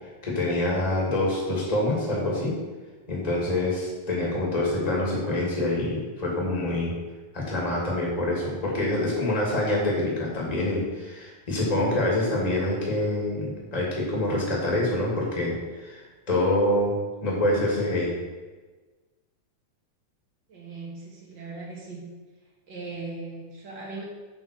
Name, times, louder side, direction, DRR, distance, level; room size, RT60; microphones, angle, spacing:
voice 1, 0.0-2.5 3.1-6.9 7.3-18.2, left 1 dB, 15° left, -4 dB, 2.1 m, -26 dB
voice 2, 20.5-22.0 22.7-24.0, right 3 dB, 40° right, -3 dB, 2.5 m, -38 dB
7.5 x 5.6 x 6.8 m, 1.3 s
omnidirectional pair, 3.4 m